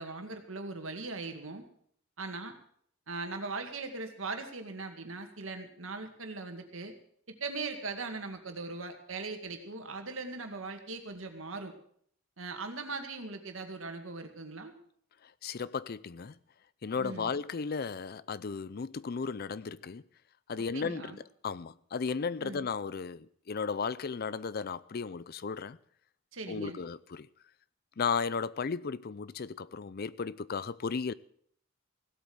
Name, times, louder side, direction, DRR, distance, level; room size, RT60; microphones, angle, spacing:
voice 1, 0.0-1.7 2.2-2.5 3.1-6.9 7.3-11.7 12.4-14.7 17.0-17.3 20.7-21.2 22.4-22.7 26.3-26.8, right 3 dB, 75° right, 2.2 m, -40 dB
voice 2, 15.2-16.4 16.8-20.0 20.5-25.8 26.5-27.3 28.0-31.1, left 5 dB, 45° left, 0.5 m, -35 dB
16.5 x 8.3 x 7.9 m
head